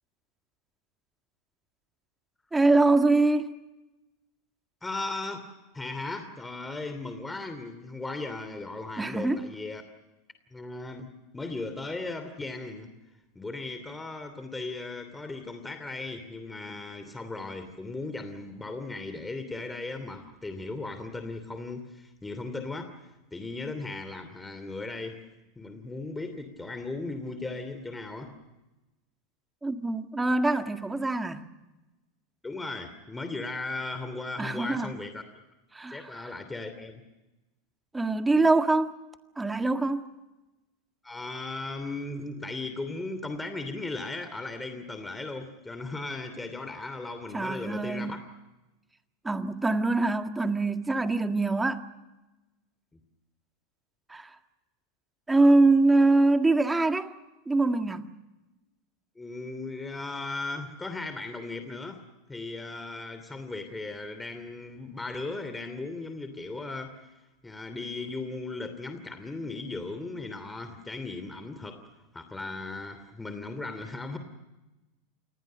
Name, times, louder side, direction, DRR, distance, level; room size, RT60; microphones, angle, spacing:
voice 1, 2.5-3.5 9.0-9.5 29.6-31.4 34.4-34.9 35.7-36.1 37.9-39.0 39.4-40.1 47.3-48.2 49.2-51.8 54.1-54.3 55.3-57.1 57.5-58.1, right 2 dB, 10° right, 1.8 m, -24 dB
voice 2, 4.8-5.5 5.7-9.8 10.5-12.9 13.3-22.9 23.3-25.2 25.6-28.3 32.4-35.2 35.9-37.0 41.0-48.2 52.9-53.0 59.2-62.0 62.3-67.1 67.4-71.8 72.1-74.2, left 3 dB, 10° left, 2.8 m, -37 dB
28.0 x 20.5 x 6.5 m
hypercardioid pair, 90°, 0 cm